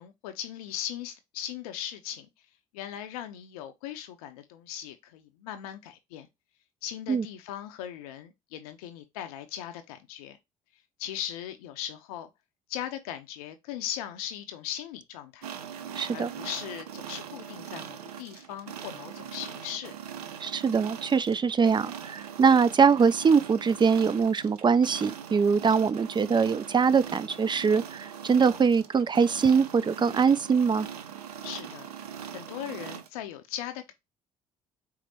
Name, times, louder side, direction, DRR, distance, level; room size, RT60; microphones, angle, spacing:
voice 1, 0.0-2.3 2.7-6.3 6.8-10.4 11.0-12.3 12.7-15.5 16.1-19.9 25.6-25.7 31.4-31.9 32.3-33.9, left 11 dB, 75° left, 0.5 m, -38 dB
sound 1, 15.4-33.1, right 8 dB, 85° right, 0.4 m, -41 dB
voice 2, 16.0-16.3 20.4-30.9, right 6 dB, 25° right, 0.4 m, -23 dB
4.3 x 2.0 x 4.2 m
hypercardioid pair, 50°, 19 cm